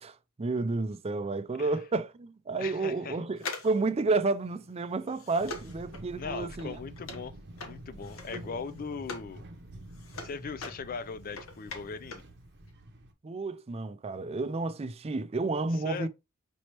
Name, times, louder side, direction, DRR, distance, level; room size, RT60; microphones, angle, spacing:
voice 1, 0.0-6.8 8.3-8.6 13.2-16.1, right 3 dB, 30° right, 0.4 m, -31 dB
voice 2, 2.6-3.2 6.2-9.4 10.2-12.2 15.8-16.1, left 5 dB, 40° left, 0.4 m, -39 dB
sound 1, 3.4-9.3 9.7-12.4 12.6-12.7, left 3 dB, 65° left, 0.9 m, -43 dB
sound 2, 5.4-13.1, right 1 dB, 50° right, 0.7 m, -48 dB
5.3 x 3.1 x 2.9 m
head